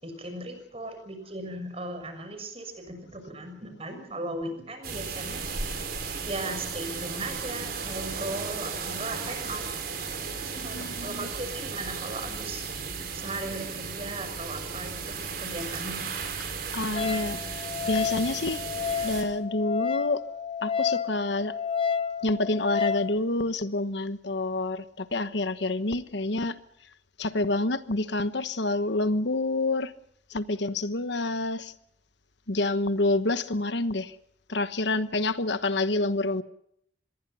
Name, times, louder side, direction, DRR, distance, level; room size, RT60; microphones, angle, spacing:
voice 1, 0.0-5.6 6.2-9.6 10.2-12.7 13.1-16.0, right 2 dB, 30° right, 7 dB, 6.5 m, -37 dB
sound 1, 4.8-19.2, right 5 dB, 50° right, 5.5 m, -35 dB
voice 2, 10.5-11.3 16.7-18.6 19.0-20.2 20.6-21.5 22.2-26.6 27.2-29.9 30.3-31.7 32.5-34.1 34.5-36.4, left 2 dB, 70° left, 12 dB, 1.2 m, -28 dB
Wind instrument woodwind instrument, 17.0-23.1, left 7 dB, 30° left, 1.0 m, -30 dB
26.0 x 21.5 x 5.6 m, 0.71 s
head